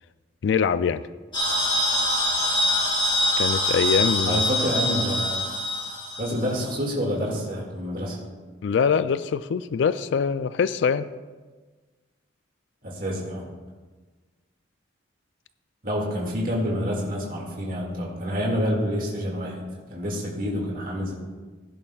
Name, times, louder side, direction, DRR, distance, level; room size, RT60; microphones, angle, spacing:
voice 1, 0.4-1.0 3.4-4.4 8.6-11.1, left 6 dB, 65° left, 14 dB, 0.3 m, -23 dB
sound 1, 1.3-6.6, left 1 dB, 25° left, 1.7 m, -24 dB
voice 2, 4.2-5.5 6.2-8.2 12.8-13.5 15.8-19.6 19.9-21.1, equal, 45° right, -2 dB, 2.0 m, -28 dB
16.0 x 10.5 x 2.3 m, 1.3 s
head